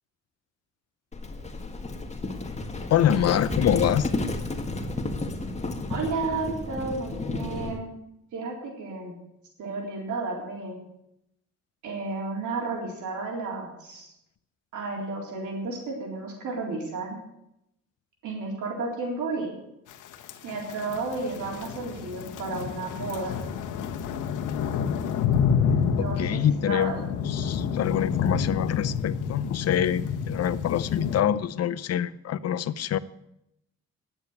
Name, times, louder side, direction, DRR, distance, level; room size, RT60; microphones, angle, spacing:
Livestock farm animals working animals, 1.1-7.8, left 2 dB, 20° left, 1.8 m, -32 dB
voice 1, 2.9-4.1 26.0-27.0 27.2-33.0, left 10 dB, 55° left, 15 dB, 0.7 m, -25 dB
voice 2, 5.9-7.9 8.3-9.1 9.6-10.8 11.8-14.1 14.7-17.2 18.2-19.5 20.4-23.4 25.7-26.4 26.7-27.0, right 3 dB, 75° right, 0 dB, 4.0 m, -32 dB
sound 1, 20.1-31.2, left 7 dB, 85° left, 1.3 m, -29 dB
10.5 x 8.8 x 9.5 m, 0.83 s
cardioid pair, 90°, 30 cm